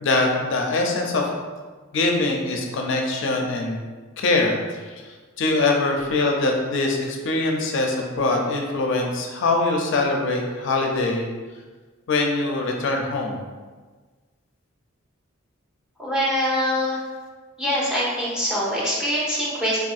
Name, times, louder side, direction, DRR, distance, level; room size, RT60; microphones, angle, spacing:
voice 1, 0.0-1.3 1.9-3.8 4.2-11.3 12.1-13.4, left 2 dB, 60° left, 1 dB, 0.4 m, -23 dB
voice 2, 16.0-17.0 17.6-19.8, equal, 5° right, -7 dB, 0.7 m, -24 dB
3.6 x 2.6 x 2.4 m, 1.4 s
head